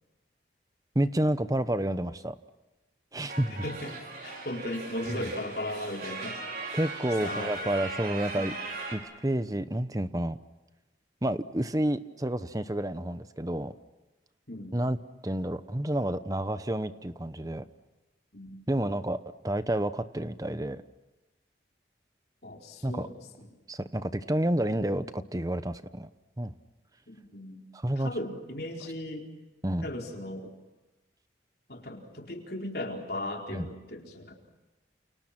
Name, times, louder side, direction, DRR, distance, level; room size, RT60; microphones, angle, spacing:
voice 1, 0.9-2.4 3.1-3.6 6.7-8.5 8.9-10.4 11.2-13.7 14.7-15.0 15.2-17.7 18.7-20.8 22.8-23.1 23.7-26.1 26.4-26.5 27.7-28.1 29.6-29.8 33.5-33.7, right 1 dB, 20° right, 12 dB, 0.9 m, -29 dB
sound 1, 3.3-9.0, right 3 dB, 55° right, 5.7 m, -38 dB
voice 2, 3.5-6.4 7.2-7.7 8.3-8.5 14.5-14.8 18.3-18.6 22.4-23.5 27.1-27.6 28.0-29.3 29.8-30.5 31.7-34.3, left 1 dB, 55° left, 1 dB, 4.5 m, -37 dB
30.0 x 29.0 x 6.1 m, 1.1 s
head